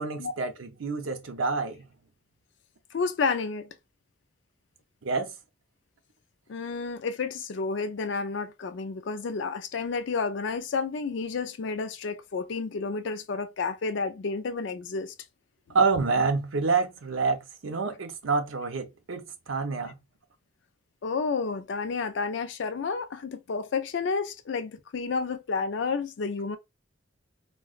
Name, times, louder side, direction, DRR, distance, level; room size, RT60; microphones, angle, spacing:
voice 1, 0.0-1.9 5.0-5.3 15.7-19.9, right 4 dB, 90° right, 0.7 m, -27 dB
voice 2, 2.9-3.7 6.5-15.1 21.0-26.6, left 4 dB, 65° left, 0.4 m, -30 dB
3.8 x 2.2 x 2.4 m
head